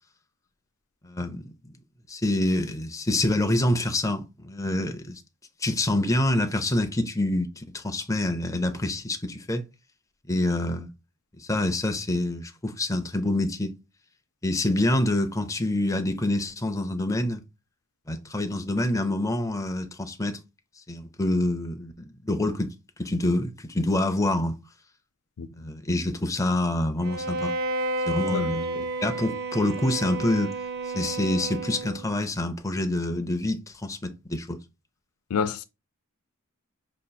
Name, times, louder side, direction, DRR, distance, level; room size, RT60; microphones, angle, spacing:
voice 1, 1.0-1.7 2.1-5.2 5.6-9.6 10.3-10.9 11.4-13.8 14.4-17.4 18.1-20.4 20.9-22.7 23.0-24.6 25.5-27.5 28.1-28.7 29.0-30.6 30.9-34.6, left 1 dB, 15° left, 0.5 m, -26 dB
voice 2, 25.4-25.7 28.3-28.9 35.3-35.6, left 6 dB, 80° left, 0.5 m, -30 dB
Bowed string instrument, 27.0-32.1, right 2 dB, 50° right, 0.6 m, -31 dB
5.1 x 2.9 x 2.3 m
head